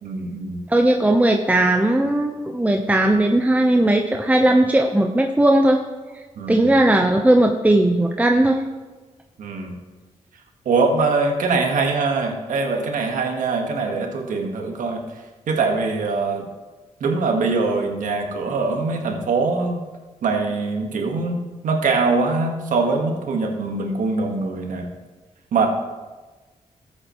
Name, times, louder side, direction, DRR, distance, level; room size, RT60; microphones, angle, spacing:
voice 1, 0.0-0.6 6.4-6.7 9.4-9.8 10.6-15.0 15.5-16.5 17.0-19.8 20.2-24.9 25.5-25.7, right 4 dB, 80° right, 2 dB, 1.5 m, -23 dB
voice 2, 0.7-5.8 6.5-8.6, right 1 dB, 10° right, 3 dB, 0.8 m, -17 dB
13.5 x 8.0 x 3.1 m, 1.3 s
cardioid pair, 55°, 13 cm